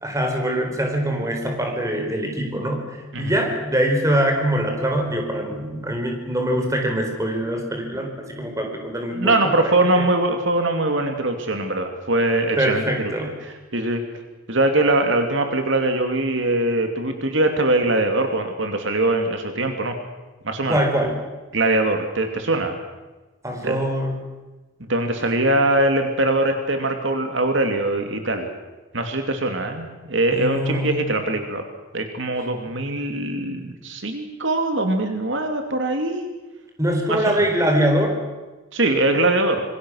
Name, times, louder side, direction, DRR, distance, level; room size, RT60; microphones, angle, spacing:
voice 1, 0.0-9.4 10.0-10.1 12.6-13.3 20.7-21.2 23.4-24.1 30.3-31.1 36.8-38.2, equal, 15° right, 3 dB, 4.1 m, -23 dB
voice 2, 9.1-12.8 13.2-14.0 14.5-19.9 20.4-20.8 21.5-22.8 23.6-23.9 24.8-28.5 28.9-31.6 31.9-36.2 37.1-37.4 38.7-39.6, right 2 dB, 60° right, 5 dB, 2.5 m, -22 dB
26.5 x 23.0 x 6.4 m, 1.2 s
head